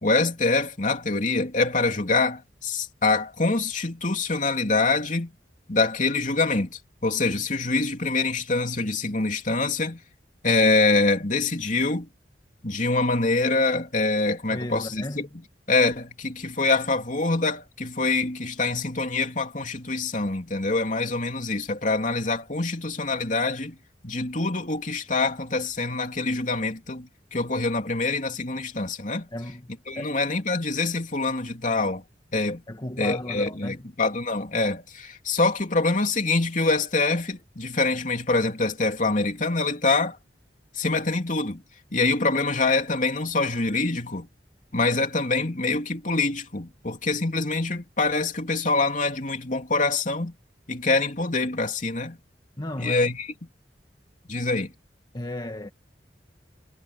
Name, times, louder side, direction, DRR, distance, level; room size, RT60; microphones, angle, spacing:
voice 1, 0.0-5.3 5.7-10.0 10.4-12.1 12.6-15.3 15.7-23.8 24.0-29.3 29.9-32.0 32.3-32.6 33.0-40.2 40.7-41.6 41.9-44.3 44.7-50.3 50.7-52.2 52.8-53.3 54.3-54.7, left 3 dB, 45° left, 3.1 m, -25 dB
voice 2, 14.5-15.3 29.3-30.1 32.7-33.9 52.6-53.1 55.1-55.7, left 1 dB, 25° left, 1.8 m, -35 dB
head